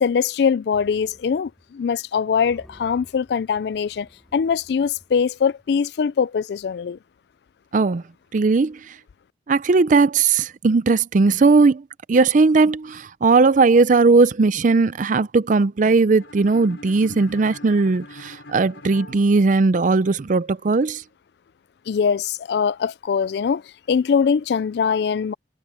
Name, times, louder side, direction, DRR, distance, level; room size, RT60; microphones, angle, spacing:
voice 1, 0.0-7.0 21.9-23.6 23.9-25.3, left 6 dB, 65° left, 0.3 m, -22 dB
sound 1, 0.7-1.7 2.0-2.1 2.4-5.8, equal, ahead, 3.5 m, -52 dB
voice 2, 7.7-8.0 8.3-8.9 9.5-11.8 12.1-21.0, right 4 dB, 45° right, 0.4 m, -18 dB
sound 2, 16.2-20.1, left 2 dB, 85° left, 5.0 m, -43 dB
head